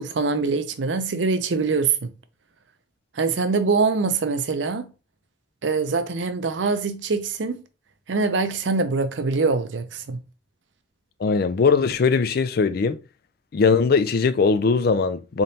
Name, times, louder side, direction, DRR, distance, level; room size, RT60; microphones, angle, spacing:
voice 1, 0.0-2.1 3.2-4.9 5.6-7.6 8.1-10.2, right 4 dB, 90° right, 0.6 m, -24 dB
voice 2, 11.2-13.0 13.5-15.4, left 5 dB, 55° left, 0.4 m, -20 dB
3.8 x 3.6 x 2.7 m
head